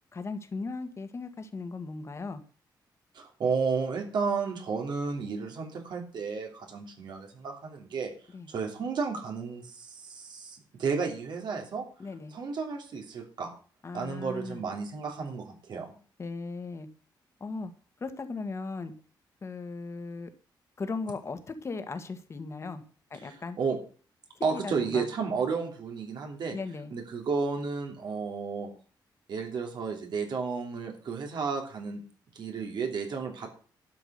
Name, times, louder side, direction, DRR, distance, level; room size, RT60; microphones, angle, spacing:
voice 1, 0.1-2.4 8.3-8.5 12.0-12.3 13.8-14.6 16.2-16.9 17.4-17.7 18.0-18.9 19.4-20.3 20.8-22.8 23.1-23.6 24.5-25.1 26.5-26.9, left 4 dB, 35° left, 9 dB, 1.7 m, -37 dB
voice 2, 3.1-8.1 8.5-11.8 12.3-13.5 13.9-15.9 23.1-23.8 24.4-26.6 26.9-28.7 29.3-32.0 32.3-33.5, right 5 dB, 70° right, 2 dB, 3.0 m, -32 dB
12.0 x 6.0 x 8.0 m, 0.40 s
cardioid pair, 120°, 8 cm